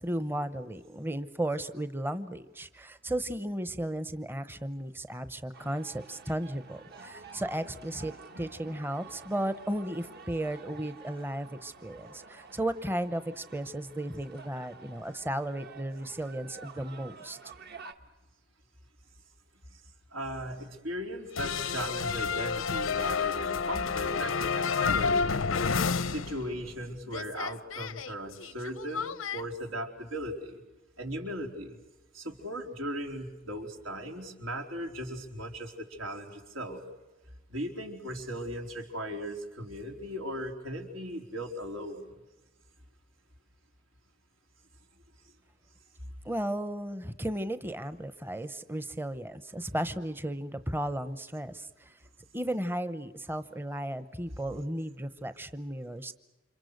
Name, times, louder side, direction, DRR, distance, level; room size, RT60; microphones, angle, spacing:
voice 1, 0.0-17.4 46.2-52.0 52.3-56.1, right 1 dB, 10° right, 12 dB, 0.8 m, -35 dB
sound 1, 5.5-17.9, right 4 dB, 55° right, 1.5 m, -50 dB
voice 2, 20.1-25.4 26.1-30.6 31.0-31.8 32.1-36.8 37.5-42.1, equal, 85° right, 2 dB, 4.2 m, -37 dB
sound 2, 21.3-26.8 27.1-29.4, left 5 dB, 90° left, 0.8 m, -30 dB
29.5 x 26.5 x 6.6 m, 1.1 s
head